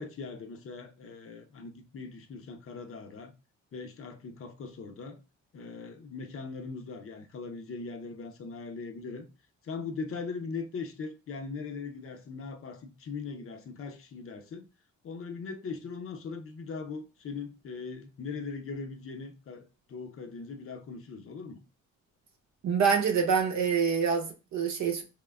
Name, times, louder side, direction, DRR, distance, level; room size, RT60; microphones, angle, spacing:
voice 1, 0.0-3.3 3.7-5.2 5.5-9.3 9.6-14.6 15.0-21.6, left 4 dB, 45° left, 0.6 m, -40 dB
voice 2, 22.6-25.0, right 6 dB, 65° right, 0.8 m, -26 dB
3.5 x 3.0 x 2.2 m
cardioid pair, 90°, 30 cm